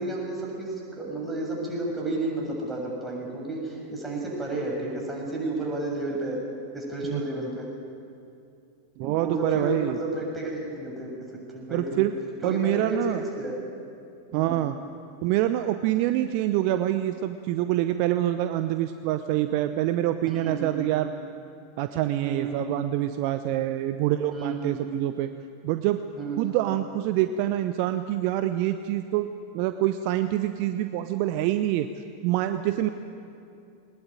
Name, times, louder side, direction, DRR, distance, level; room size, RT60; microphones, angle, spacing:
voice 1, 0.0-6.4 6.7-7.7 9.0-11.1 11.5-12.0 12.4-13.6 14.3-14.6 20.3-20.8 22.2-22.7 24.3-24.7 26.2-26.6, right 2 dB, 10° right, -2 dB, 7.2 m, -32 dB
voice 2, 9.0-10.0 11.7-12.1 12.4-13.2 14.3-14.8 15.2-21.1 21.8-25.3 25.6-26.0 26.4-29.3 29.5-31.9 32.2-32.9, right 13 dB, 45° right, 10 dB, 0.8 m, -26 dB
21.5 x 20.0 x 9.2 m, 2.6 s
figure-of-eight pair, 90°, 0 cm